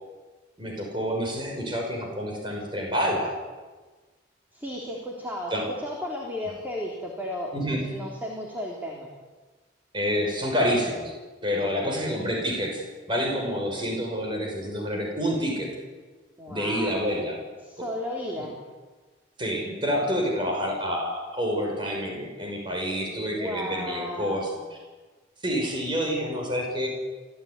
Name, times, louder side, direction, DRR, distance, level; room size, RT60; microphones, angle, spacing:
voice 1, 0.6-3.3 5.5-5.6 7.5-7.8 9.9-11.1 11.4-12.8 13.1-15.7 16.5-17.4 18.4-18.5 19.4-24.5 25.4-26.9, equal, 25° right, 0 dB, 6.1 m, -28 dB
voice 2, 4.5-5.5 5.8-9.1 11.6-12.2 16.4-16.9 17.6-18.6 23.0-24.6, left 1 dB, 10° right, -2 dB, 3.4 m, -35 dB
27.0 x 16.5 x 9.8 m, 1.3 s
head